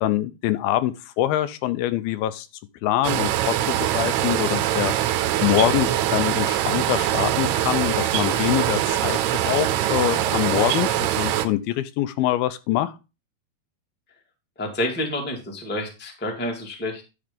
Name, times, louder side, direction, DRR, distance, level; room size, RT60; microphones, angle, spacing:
voice 1, 0.0-2.5 2.8-12.9, left 13 dB, 80° left, 13 dB, 2.4 m, -24 dB
sound 1, 3.0-11.5, right 12 dB, 90° right, 2.8 m, -23 dB
voice 2, 14.6-17.0, left 1 dB, 5° left, 1 dB, 0.9 m, -29 dB
11.0 x 4.5 x 5.1 m, 0.29 s
omnidirectional pair, 4.4 m